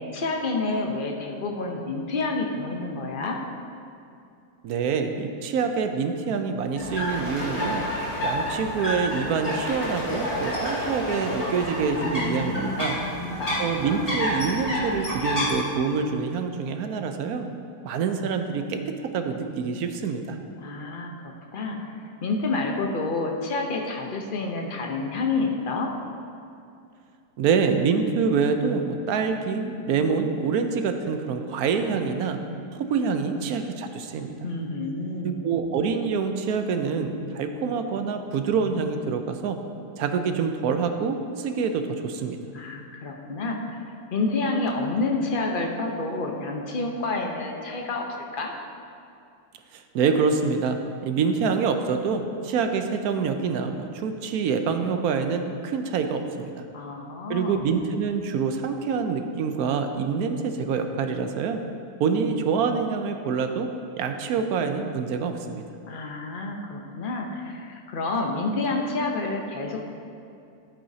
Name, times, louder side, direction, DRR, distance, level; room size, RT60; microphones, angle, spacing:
voice 1, 0.1-3.4 11.9-13.7 20.6-22.0 22.2-25.9 34.4-35.4 42.5-48.1 48.3-48.5 56.7-57.7 65.9-69.9, left 3 dB, 45° left, 1 dB, 0.8 m, -29 dB
voice 2, 4.6-7.8 8.2-13.0 13.6-17.5 17.8-20.4 27.4-32.4 32.7-34.4 35.2-39.6 40.0-42.4 49.9-50.8 51.0-56.5 57.3-61.6 62.0-63.7 64.0-65.6, right 5 dB, 70° right, 6 dB, 1.0 m, -26 dB
sound 1, 6.8-15.5, equal, 20° left, 1.9 m, -29 dB
11.5 x 8.8 x 2.7 m, 2.5 s
omnidirectional pair, 1.8 m